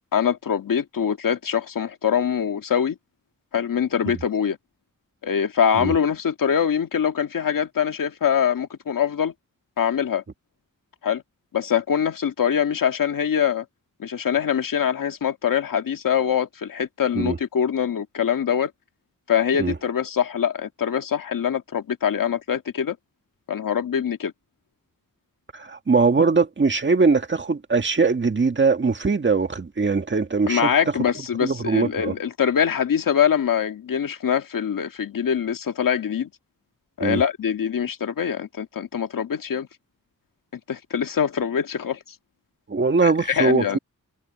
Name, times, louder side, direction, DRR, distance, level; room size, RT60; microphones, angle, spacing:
voice 1, 0.1-3.0 3.5-4.6 5.2-9.3 9.8-10.2 11.0-11.2 11.5-13.7 14.0-18.7 19.3-23.0 23.5-24.3 30.5-36.3 37.0-39.7 40.5-42.0 43.0-43.8, left 8 dB, 85° left, 2.0 m, -23 dB
voice 2, 25.5-30.7 31.4-32.2 37.0-37.2 42.7-43.8, right 4 dB, 35° right, 1.8 m, -21 dB
wide cardioid pair, 130°, 32 cm